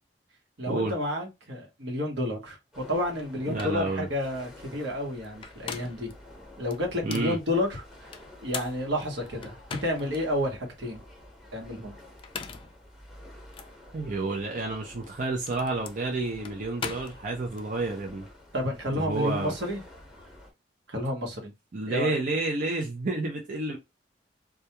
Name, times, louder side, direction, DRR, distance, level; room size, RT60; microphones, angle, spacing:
voice 1, 0.6-6.1 6.6-8.1 8.4-11.0 11.5-11.9 18.5-19.8 20.9-21.5 21.9-22.2, left 1 dB, 80° right, 1.0 m, -30 dB
sound 1, 2.7-20.5, left 1 dB, ahead, 1.0 m, -50 dB
sound 2, 3.2-3.3 3.6-3.8 5.2-6.1 6.7-7.3 8.1-10.2 10.7-10.8 12.1-12.8 13.5-13.7 14.9-17.7, left 6 dB, 30° left, 0.3 m, -40 dB
voice 2, 3.5-4.1 7.0-7.4 13.9-18.3 18.9-19.5 21.7-23.8, right 3 dB, 45° right, 0.5 m, -30 dB
2.3 x 2.2 x 2.8 m
head